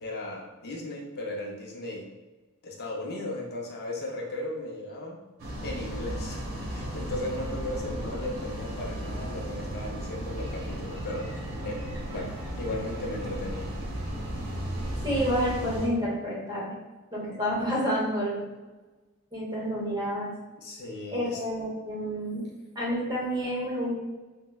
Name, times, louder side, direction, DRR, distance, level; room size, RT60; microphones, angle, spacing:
voice 1, 0.0-2.1 2.6-5.2 5.6-13.7 20.6-21.4, left 1 dB, 50° left, -1 dB, 0.5 m, -36 dB
sound 1, 5.4-15.9, right 1 dB, 65° right, 0.8 m, -35 dB
voice 2, 15.0-16.7 17.1-18.4 19.3-20.3 21.1-22.4 22.7-23.9, equal, 20° right, -5 dB, 0.8 m, -29 dB
4.3 x 2.0 x 2.2 m, 1.2 s
head